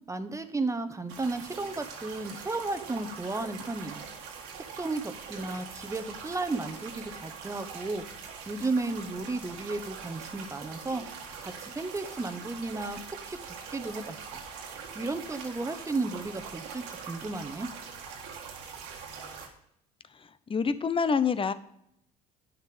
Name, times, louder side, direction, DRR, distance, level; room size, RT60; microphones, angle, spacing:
voice 1, 0.1-4.0 4.5-8.0 8.5-11.0 11.4-13.4 13.7-14.2 14.7-17.7, right 3 dB, 15° right, 8 dB, 1.1 m, -34 dB
sound 1, 1.1-19.5, right 6 dB, 80° right, 1.7 m, -43 dB
voice 2, 20.1-21.5, left 5 dB, 25° left, 13 dB, 0.8 m, -27 dB
9.9 x 6.6 x 5.1 m, 0.75 s
hypercardioid pair, 70°, 20 cm